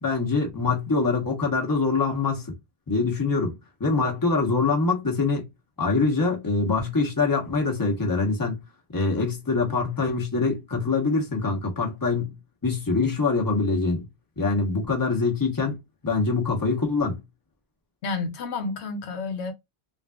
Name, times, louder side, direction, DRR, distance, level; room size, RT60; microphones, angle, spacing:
voice 1, 0.0-2.5 2.9-5.5 5.8-8.6 8.9-12.3 12.6-14.1 14.4-15.8 16.0-17.2, left 4 dB, 20° left, 0.9 m, -24 dB
voice 2, 18.0-19.5, left 4 dB, 85° left, 1.0 m, -30 dB
3.5 x 2.6 x 2.2 m
omnidirectional pair, 1.1 m